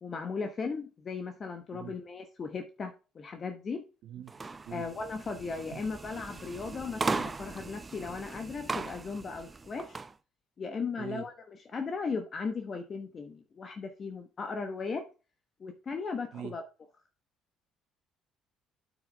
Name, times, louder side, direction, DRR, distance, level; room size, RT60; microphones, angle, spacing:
voice 1, 0.0-3.8 4.7-10.0 10.6-15.0 15.6-16.6, left 4 dB, 40° left, 1.2 m, -37 dB
voice 2, 4.0-4.4 4.6-4.9 5.7-5.8 11.0-11.3 16.3-16.5, right 10 dB, 70° right, 1.7 m, -42 dB
sound 1, 4.3-10.1, right 4 dB, 25° right, 0.6 m, -38 dB
8.2 x 6.3 x 3.4 m
cardioid pair, 90°, 0 cm